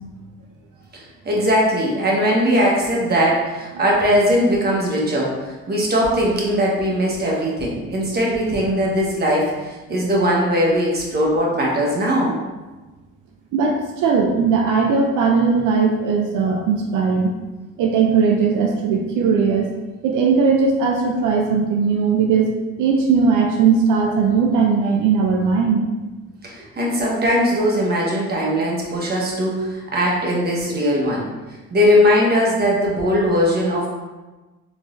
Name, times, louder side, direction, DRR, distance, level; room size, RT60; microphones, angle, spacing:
voice 1, 1.2-5.3 5.7-12.3 26.4-31.3 31.7-33.9, equal, 30° right, -3 dB, 1.1 m, -19 dB
voice 2, 13.5-17.3 17.8-19.7 20.0-22.5 22.8-25.8, right 5 dB, 85° right, 1 dB, 0.5 m, -18 dB
3.6 x 3.1 x 2.5 m, 1.2 s
cardioid pair, 90°, 30 cm